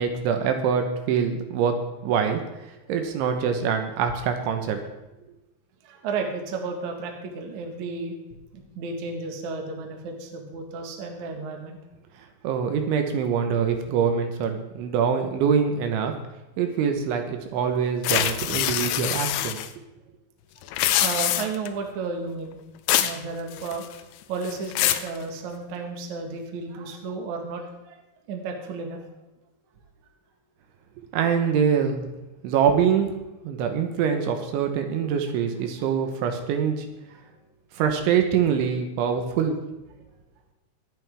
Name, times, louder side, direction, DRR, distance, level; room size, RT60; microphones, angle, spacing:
voice 1, 0.0-4.8 12.4-16.2 16.6-19.6 31.1-32.1 32.4-33.1 33.4-36.9 37.7-39.6, right 7 dB, 75° right, 6 dB, 3.4 m, -24 dB
voice 2, 5.8-8.2 8.5-11.8 21.0-22.6 23.0-23.8 24.3-28.0 28.3-29.1, right 4 dB, 55° right, 3 dB, 2.1 m, -33 dB
sound 1, 18.0-19.7 20.6-21.7 22.9-23.2 23.5-24.0 24.4-25.1, left 12 dB, 85° left, 3.1 m, -24 dB
23.0 x 9.2 x 3.6 m, 0.99 s
omnidirectional pair, 5.6 m